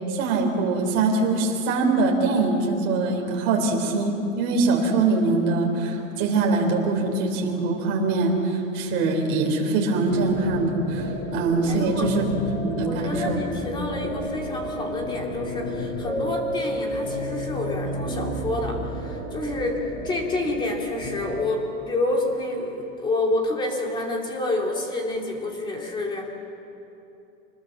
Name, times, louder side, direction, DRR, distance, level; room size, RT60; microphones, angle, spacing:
voice 1, 0.1-13.4, right 3 dB, 30° right, 1 dB, 3.7 m, -23 dB
sound 1, 10.1-21.3, equal, 35° left, 6.9 m, -32 dB
voice 2, 11.7-12.1 12.9-26.3, left 2 dB, 10° left, 0 dB, 2.5 m, -28 dB
26.0 x 20.0 x 7.3 m, 2.8 s
supercardioid pair, 175°, 40 cm